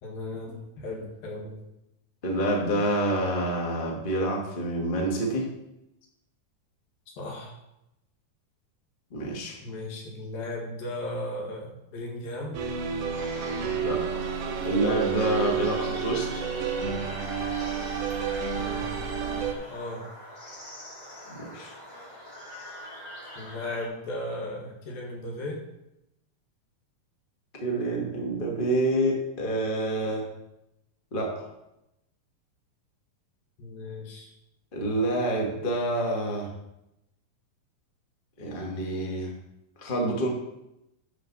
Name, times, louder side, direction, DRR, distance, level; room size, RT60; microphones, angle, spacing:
voice 1, 0.0-1.6 7.1-7.6 9.6-12.6 18.5-20.1 23.4-25.6 33.6-34.3, left 1 dB, 80° left, -1 dB, 3.6 m, -36 dB
voice 2, 2.2-5.5 9.1-9.6 13.8-14.1 14.6-16.4 21.3-21.7 27.6-30.2 31.1-31.5 34.7-36.5 38.4-39.3 39.8-40.3, right 1 dB, 55° left, -1 dB, 0.5 m, -27 dB
sound 1, 12.5-19.5, right 6 dB, 70° right, 1.5 m, -30 dB
sound 2, 13.1-23.9, left 1 dB, 20° left, 4.1 m, -43 dB
12.5 x 5.8 x 4.1 m, 0.87 s
omnidirectional pair, 4.1 m